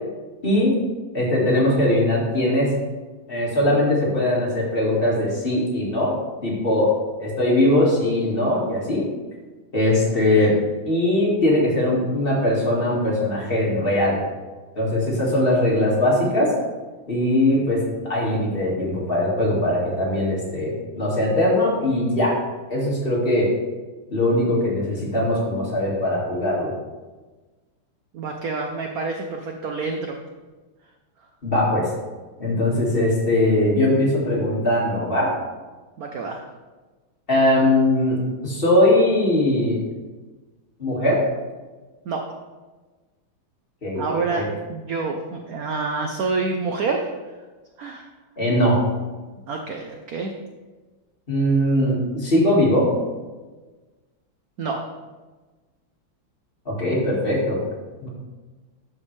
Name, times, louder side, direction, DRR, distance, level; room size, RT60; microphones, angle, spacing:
voice 1, 0.4-0.7 1.1-2.7 3.3-6.1 6.4-6.9 7.2-9.0 9.7-10.6 10.9-14.2 14.8-16.5 17.1-22.3 22.7-23.5 24.1-26.7 31.4-31.9 32.4-35.3 37.3-38.2 38.4-39.8 40.8-41.2 43.8-44.0 44.3-44.4 48.4-48.8 51.3-52.9 56.7-57.6 58.0-58.1, left 1 dB, 25° left, -5 dB, 2.0 m, -20 dB
voice 2, 28.1-30.2 36.0-36.4 42.0-42.4 43.9-47.1 47.8-48.1 49.5-50.3 54.6-54.9, right 4 dB, 70° right, 3 dB, 0.8 m, -27 dB
12.5 x 5.3 x 3.2 m, 1.3 s
omnidirectional pair, 2.3 m